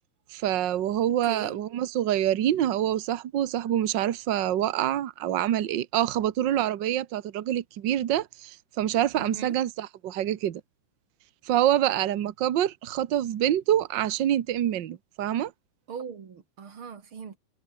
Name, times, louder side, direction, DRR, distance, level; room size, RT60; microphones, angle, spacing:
voice 1, 0.3-10.6 11.4-15.5, right 11 dB, 90° right, 0.9 m, -26 dB
voice 2, 1.1-1.6 9.2-9.6 15.9-17.4, right 6 dB, 40° right, 3.0 m, -39 dB
omnidirectional pair, 3.7 m